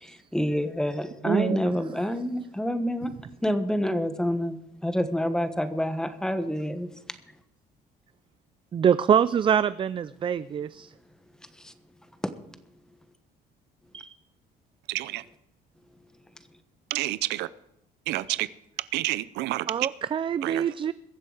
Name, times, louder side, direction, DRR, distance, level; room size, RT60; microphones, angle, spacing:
voice 1, 0.0-3.1 3.4-4.6 4.8-6.9 12.2-12.3, equal, 5° left, 1.2 m, -27 dB
voice 2, 1.2-1.7 8.7-10.9 13.9-14.2 19.7-20.9, right 8 dB, 30° right, 0.4 m, -25 dB
voice 3, 14.9-15.2 16.9-17.5 18.1-18.5 18.8-19.7 20.4-20.7, right 17 dB, 85° right, 0.6 m, -29 dB
22.0 x 7.5 x 4.9 m
cardioid pair, 110°, 17 cm